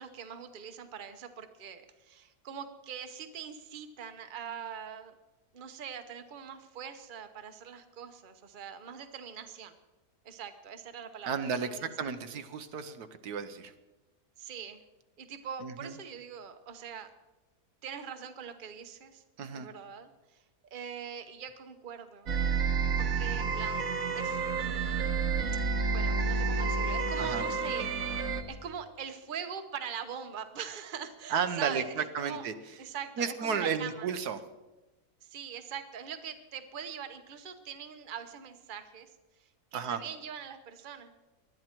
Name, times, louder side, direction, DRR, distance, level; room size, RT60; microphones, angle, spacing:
voice 1, 0.0-5.2 5.5-9.7 10.2-12.1 14.4-14.8 15.2-17.1 17.8-19.2 19.5-20.4 20.7-22.3 23.0-23.9 24.1-25.1 25.9-28.2 28.5-32.5 32.8-34.1 35.2-39.1 39.7-41.1, right 7 dB, 35° right, 8 dB, 1.0 m, -42 dB
voice 2, 11.3-13.7 15.6-15.9 19.4-19.7 27.2-27.4 31.3-32.5 33.2-34.4 39.7-40.0, right 6 dB, 80° right, 10 dB, 1.4 m, -33 dB
sound 1, 22.3-28.4, right 5 dB, 60° right, 1.6 m, -30 dB
20.0 x 12.0 x 4.5 m, 1.1 s
omnidirectional pair, 1.7 m